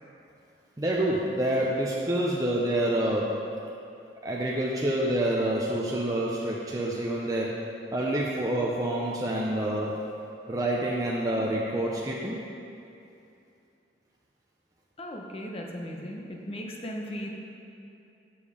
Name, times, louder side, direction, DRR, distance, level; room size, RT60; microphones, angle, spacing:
voice 1, 0.8-3.3 4.2-7.5 7.9-10.0 10.5-12.4, right 1 dB, 20° right, -4 dB, 0.6 m, -27 dB
voice 2, 15.0-17.3, equal, 35° left, 0 dB, 0.9 m, -37 dB
7.3 x 7.0 x 4.9 m, 2.6 s
head